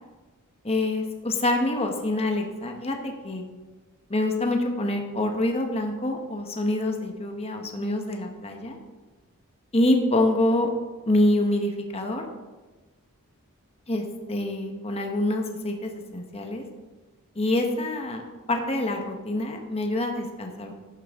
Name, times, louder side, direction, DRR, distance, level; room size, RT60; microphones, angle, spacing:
voice 1, 0.6-3.4 4.1-8.8 9.7-10.7 11.1-12.2 13.9-16.6 17.4-18.2 18.5-20.7, left 1 dB, 25° left, 3 dB, 1.1 m, -26 dB
11.5 x 10.5 x 3.6 m, 1.2 s
head